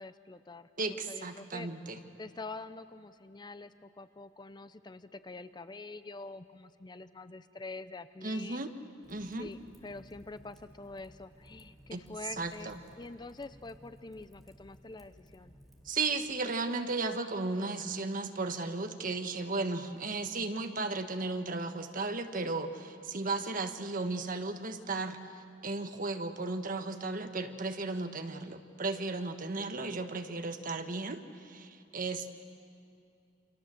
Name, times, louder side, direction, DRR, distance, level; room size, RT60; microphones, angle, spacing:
voice 1, 0.0-1.7 2.2-8.6 9.4-12.7 13.0-15.5 17.5-18.0, left 3 dB, 25° left, 12 dB, 0.6 m, -46 dB
voice 2, 0.8-2.0 8.2-8.7 9.1-9.5 11.9-12.0 12.4-12.8 15.8-25.2 25.6-32.3, right 3 dB, 50° right, 7 dB, 1.5 m, -35 dB
Fire, 9.0-16.1, equal, ahead, 2.8 m, -58 dB
29.5 x 26.0 x 7.7 m, 2.5 s
head